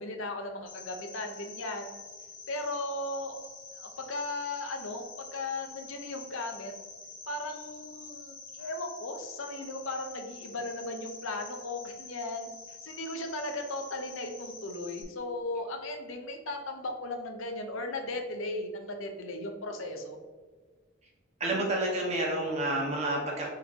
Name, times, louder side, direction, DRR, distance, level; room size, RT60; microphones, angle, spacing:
voice 1, 0.0-1.9 2.5-3.5 3.8-5.0 5.3-6.7 7.3-12.5 12.8-20.2, left 2 dB, 85° left, 4 dB, 0.7 m, -36 dB
Cricket, 0.7-15.0, left 3 dB, 40° left, 1.2 m, -47 dB
voice 2, 21.4-23.5, right 1 dB, 35° right, -2 dB, 1.0 m, -29 dB
4.5 x 3.6 x 2.9 m, 1.4 s
head